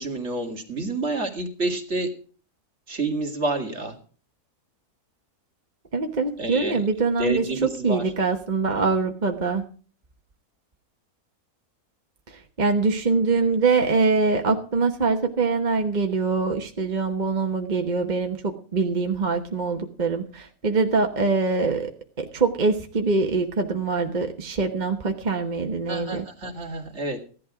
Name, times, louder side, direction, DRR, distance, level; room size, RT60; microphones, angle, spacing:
voice 1, 0.0-2.1 2.9-4.0 6.4-6.8 7.1-8.0 25.9-27.2, right 2 dB, 50° right, 3 dB, 2.6 m, -28 dB
voice 2, 5.9-7.5 7.8-9.6 12.3-21.9 22.2-26.2, right 4 dB, 30° right, 4 dB, 1.2 m, -24 dB
15.5 x 11.5 x 4.9 m, 0.41 s
omnidirectional pair, 1.6 m